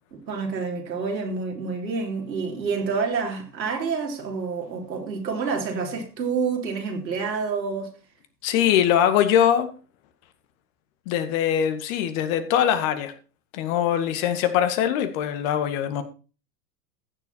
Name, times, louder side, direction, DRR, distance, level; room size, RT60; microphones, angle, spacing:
voice 1, 0.3-7.9, right 5 dB, 85° right, 3.6 m, -28 dB
voice 2, 8.4-9.7 11.1-13.1 13.5-16.0, left 9 dB, 50° left, 2.1 m, -22 dB
15.0 x 7.3 x 4.3 m
hypercardioid pair, 100°, 50 cm